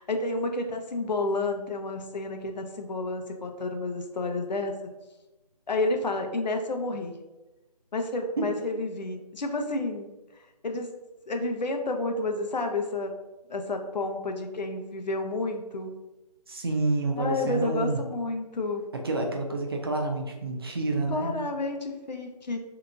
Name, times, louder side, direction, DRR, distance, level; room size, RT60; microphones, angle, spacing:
voice 1, 0.0-4.9 5.7-7.2 7.9-10.1 10.6-10.9 11.3-13.2 13.5-15.9 17.2-18.8 21.1-22.6, left 2 dB, 90° left, 4 dB, 0.6 m, -30 dB
voice 2, 16.5-18.0 19.0-21.3, right 2 dB, 35° right, 2 dB, 0.5 m, -28 dB
2.8 x 2.2 x 3.7 m, 1.1 s
figure-of-eight pair, 165°, 21 cm